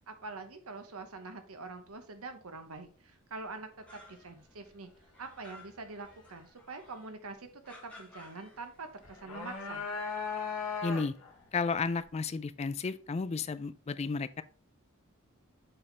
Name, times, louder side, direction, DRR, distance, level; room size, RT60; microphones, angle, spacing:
voice 1, 0.1-4.9 5.2-9.8, right 3 dB, 80° right, 1.1 m, -45 dB
sound 1, 3.5-4.5 4.8-7.1 7.6-9.0 9.4-10.0, left 2 dB, 5° left, 1.7 m, -56 dB
sound 2, 9.0-11.4, left 5 dB, 70° left, 1.8 m, -37 dB
voice 2, 10.8-11.1 11.5-14.4, left 4 dB, 30° left, 0.4 m, -33 dB
7.7 x 4.2 x 3.3 m
head